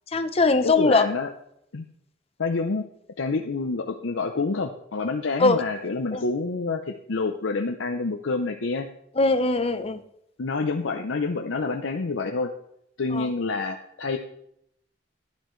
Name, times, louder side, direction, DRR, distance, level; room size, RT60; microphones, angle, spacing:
voice 1, 0.1-1.1 5.4-5.6 6.1-6.2 9.2-10.0 13.1-13.3, left 3 dB, 30° left, 9 dB, 0.7 m, -21 dB
voice 2, 0.6-1.3 1.7-1.8 2.4-2.9 3.2-8.9 10.4-12.5 13.0-14.2, left 3 dB, 85° left, 4 dB, 0.7 m, -27 dB
14.5 x 10.0 x 3.2 m, 0.75 s
head